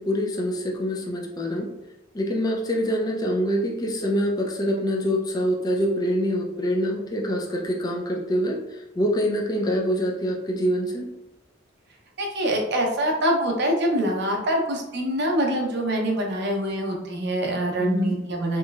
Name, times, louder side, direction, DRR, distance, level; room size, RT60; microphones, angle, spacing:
voice 1, 0.0-1.7 2.1-8.6 9.0-11.1 17.8-18.2, equal, 20° left, -1 dB, 0.4 m, -25 dB
voice 2, 12.2-18.6, right 1 dB, 60° right, 1 dB, 0.6 m, -25 dB
3.0 x 3.0 x 2.3 m, 0.92 s
head